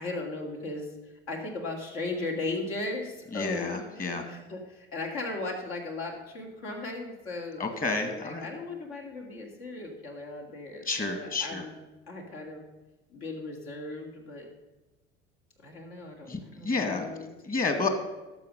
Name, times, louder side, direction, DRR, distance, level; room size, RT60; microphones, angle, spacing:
voice 1, 0.0-7.6 8.0-11.8 12.1-12.6 13.1-14.5 15.6-17.7, left 2 dB, 65° left, 1 dB, 2.5 m, -37 dB
voice 2, 3.3-4.2 7.6-8.5 10.9-11.6 16.3-17.1 17.4-17.9, left 3 dB, 30° left, 6 dB, 2.1 m, -30 dB
12.0 x 7.2 x 5.4 m, 1.1 s
hypercardioid pair, 65°, 29 cm